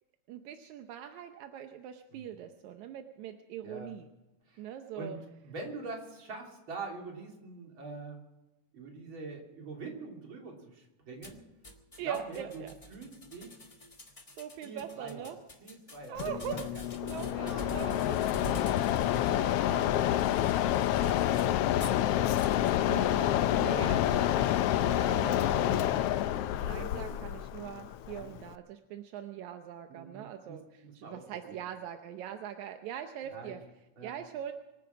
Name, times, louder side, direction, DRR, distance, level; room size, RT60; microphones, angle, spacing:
voice 1, 0.3-4.1 4.6-5.2 12.0-12.7 14.4-15.4 16.1-16.7 17.0-18.2 22.9-24.4 24.8-26.0 26.6-33.6 34.0-34.5, right 10 dB, 80° right, 6 dB, 2.2 m, -42 dB
voice 2, 3.6-3.9 4.5-4.6 5.0-8.2 8.7-11.4 12.0-12.6 12.9-13.6 14.6-16.2 16.5-17.7 18.4-22.2 25.3-25.8 26.6-27.3 28.2-28.3 29.9-31.6 33.2-33.6 34.0-34.1, right 3 dB, 45° right, 0 dB, 3.7 m, -45 dB
sound 1, 11.2-22.0 22.4-22.8, equal, 40° left, 0.5 m, -48 dB
Mechanisms, 16.2-28.5, left 12 dB, 80° left, 1.3 m, -28 dB
24.5 x 9.6 x 5.9 m, 1.0 s
omnidirectional pair, 3.3 m